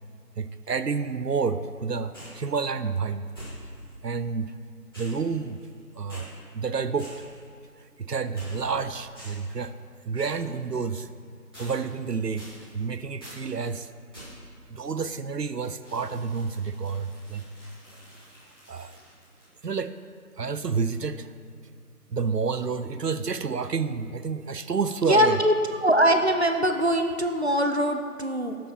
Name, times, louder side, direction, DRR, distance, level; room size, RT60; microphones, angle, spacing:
voice 1, 0.4-3.2 4.0-4.5 5.0-5.6 6.0-6.3 6.5-7.1 8.0-9.7 10.1-11.1 11.6-12.5 12.7-13.9 14.7-17.4 18.7-18.9 19.6-19.9 20.4-21.3 22.1-25.4, right 5 dB, 75° right, 12 dB, 0.7 m, -29 dB
sound 1, 2.1-2.4 3.3-3.9 4.9-5.8 6.1-6.3 7.0-7.4 8.3-8.8 9.1-9.5 10.1-10.4 11.5-12.0 12.4-12.8 13.2-13.5 14.1-14.5 15.8-19.8, equal, 15° left, 2.6 m, -46 dB
voice 2, 25.1-25.5 25.8-28.6, equal, 45° right, 5 dB, 0.6 m, -22 dB
11.5 x 7.7 x 5.8 m, 2.3 s
figure-of-eight pair, 175°, 48 cm